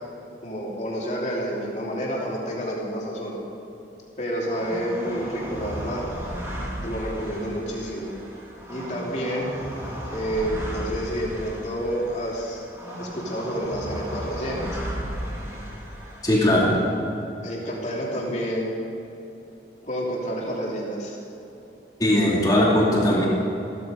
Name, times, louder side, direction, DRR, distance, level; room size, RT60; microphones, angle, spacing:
voice 1, 0.4-3.3 4.2-6.0 6.8-8.1 8.7-9.5 10.1-12.6 13.0-14.8 17.4-18.8 19.8-21.2, equal, 40° left, -3 dB, 3.2 m, -29 dB
sound 1, 4.5-16.9, equal, 15° right, 2.5 m, -35 dB
voice 2, 16.2-16.7 22.0-23.3, left 1 dB, 20° left, -4 dB, 2.6 m, -19 dB
16.5 x 13.5 x 5.2 m, 3.0 s
head